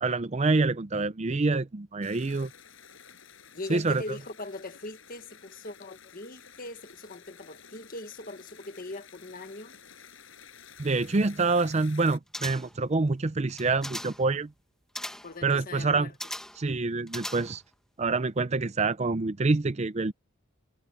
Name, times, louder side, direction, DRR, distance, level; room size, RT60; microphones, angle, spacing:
voice 1, 0.0-2.5 3.7-4.0 10.8-14.5 15.4-16.1 16.6-17.6 18.0-20.1, right 3 dB, 30° right, 0.5 m, -26 dB
sound 1, 2.0-12.2, left 7 dB, 65° left, 7.4 m, -52 dB
voice 2, 3.5-9.7 15.2-16.1, left 2 dB, 45° left, 1.8 m, -41 dB
sound 2, 12.3-12.9 13.5-14.3 15.0-15.4 16.2-16.7 17.1-17.7 18.1-18.2, left 1 dB, 5° left, 1.7 m, -39 dB
head